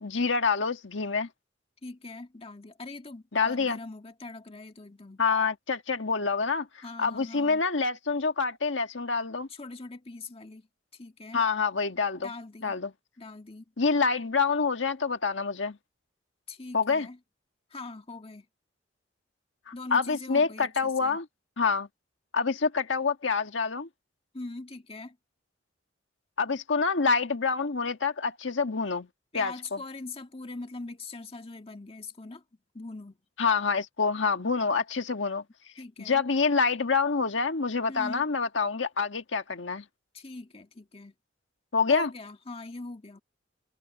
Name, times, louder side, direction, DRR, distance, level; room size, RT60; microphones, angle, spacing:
voice 1, 0.0-1.3 3.3-3.8 5.2-9.5 11.3-12.3 12.6-12.9 13.8-15.8 16.7-17.1 19.7-21.2 21.6-21.9 22.3-23.9 26.4-29.1 29.3-29.8 33.4-35.4 36.0-39.8 41.7-42.1, left 4 dB, 75° left, 1.5 m, -27 dB
voice 2, 1.8-5.2 6.8-7.6 9.5-10.7 10.9-11.4 12.2-12.8 13.2-13.6 16.5-17.2 17.7-18.5 19.7-21.2 24.3-25.2 29.3-32.4 32.7-33.2 35.7-36.2 37.9-38.3 40.1-41.1 41.9-43.2, left 3 dB, 30° left, 1.7 m, -42 dB
head